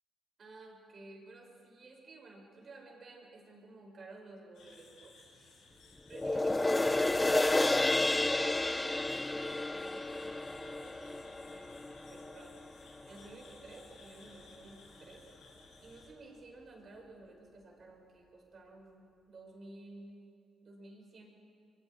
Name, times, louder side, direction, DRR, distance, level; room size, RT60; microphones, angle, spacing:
voice 1, 0.4-12.6 12.9-15.3 15.8-20.3 20.6-21.2, right 2 dB, 50° right, 0 dB, 5.6 m, -53 dB
sound 1, 4.5-16.1, left 3 dB, 80° left, 5.3 m, -58 dB
sound 2, 6.1-12.7 13.2-13.3, left 2 dB, 15° left, 0.5 m, -31 dB
27.5 x 23.0 x 4.7 m, 2.4 s
cardioid pair, 90°, 0 cm